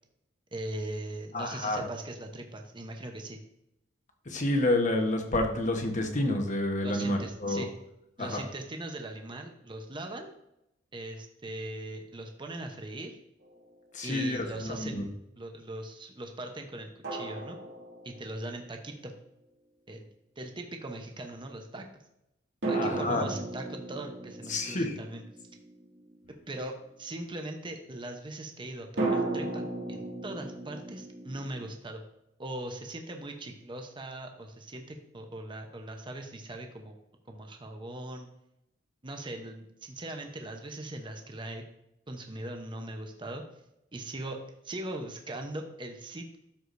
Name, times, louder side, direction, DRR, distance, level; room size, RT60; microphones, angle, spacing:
voice 1, 0.5-3.4 6.8-7.7 8.2-10.3 10.9-13.2 14.0-17.6 18.0-19.1 19.9-20.1 20.4-21.9 22.7-25.2 26.5-32.0 32.4-36.9 37.3-38.3 39.0-41.6 42.1-43.4 43.9-46.4, right 1 dB, 25° right, 4 dB, 0.8 m, -40 dB
voice 2, 1.3-1.8 4.3-7.7 8.2-8.4 13.9-15.0 22.7-23.3 24.5-25.0, left 1 dB, 40° left, 4 dB, 1.1 m, -29 dB
sound 1, 13.4-13.6 17.0-18.6 22.6-26.3 29.0-31.7, right 2 dB, 65° right, 2.4 m, -35 dB
12.5 x 4.9 x 2.6 m, 0.83 s
head